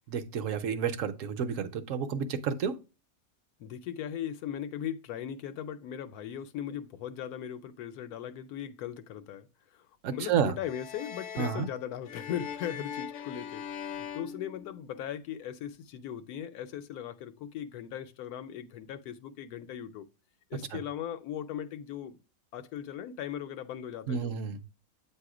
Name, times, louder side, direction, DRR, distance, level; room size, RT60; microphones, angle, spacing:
voice 1, 0.1-2.8 10.0-10.5 11.4-11.7 20.7-20.8 24.1-24.6, right 7 dB, 65° right, 0.9 m, -30 dB
voice 2, 3.6-9.5 9.7-20.1 20.5-22.2 22.5-24.4, left 10 dB, 85° left, 1.1 m, -38 dB
sound 1, 10.6-15.2, left 8 dB, 65° left, 0.8 m, -41 dB
8.2 x 2.8 x 4.8 m
omnidirectional pair, 1.6 m